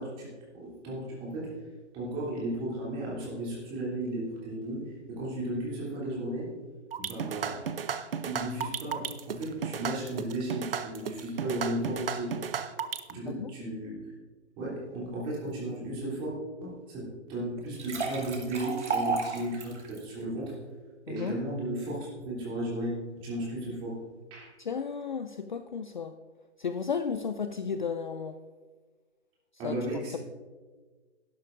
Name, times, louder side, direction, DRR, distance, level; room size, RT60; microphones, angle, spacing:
voice 1, 0.0-1.6 1.9-6.6 7.0-7.9 8.2-12.4 13.1-14.0 14.6-20.6 21.1-24.0 24.3-24.5 29.6-30.2, right 1 dB, 15° right, -6 dB, 3.0 m, -35 dB
sound 1, 6.9-13.1, right 7 dB, 55° right, 0.7 m, -34 dB
sound 2, 17.6-20.0, right 4 dB, 75° right, 2.4 m, -32 dB
voice 2, 24.6-26.2 26.6-28.4 29.6-29.8, left 6 dB, 45° left, 9 dB, 0.4 m, -33 dB
12.0 x 11.5 x 2.6 m, 1.4 s
hypercardioid pair, 165°, 35 cm